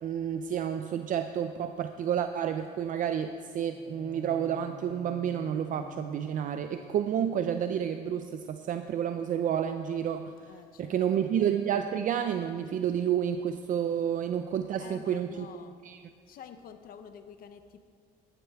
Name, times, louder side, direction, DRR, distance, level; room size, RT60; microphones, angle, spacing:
voice 1, 0.0-10.5 10.8-15.5 15.8-16.0, right 9 dB, 50° right, 8 dB, 0.5 m, -30 dB
Bowed string instrument, 3.6-7.4, left 5 dB, 5° left, 3.8 m, -49 dB
voice 2, 10.4-11.3 14.8-15.8 16.3-17.8, left 8 dB, 60° left, 9 dB, 0.7 m, -49 dB
15.0 x 11.0 x 3.5 m, 2.1 s
cardioid pair, 110°, 17 cm